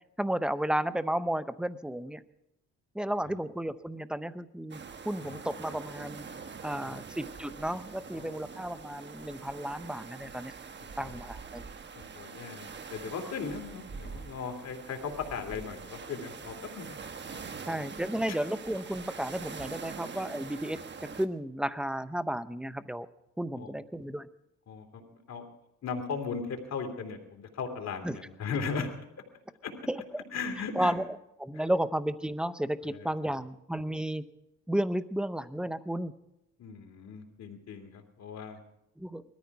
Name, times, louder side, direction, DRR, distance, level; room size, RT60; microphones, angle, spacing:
voice 1, 0.2-2.2 2.9-4.8 5.0-6.3 6.6-10.5 11.0-11.6 17.7-23.1 23.4-24.3 28.0-28.2 29.9-30.2 30.7-31.0 31.4-34.2 34.7-36.1 39.0-39.2, right 1 dB, 5° right, 13 dB, 0.8 m, -33 dB
sound 1, 4.7-21.3, right 5 dB, 35° right, 1.2 m, -44 dB
voice 2, 10.8-11.2 11.9-17.0 17.3-17.5 17.8-17.9 23.6-23.7 24.7-25.5 25.8-29.1 29.6-29.7 30.3-30.9 32.8-33.3 36.6-38.6, left 5 dB, 60° left, 4 dB, 2.9 m, -38 dB
20.5 x 14.0 x 4.8 m, 0.82 s
cardioid pair, 90°, 30 cm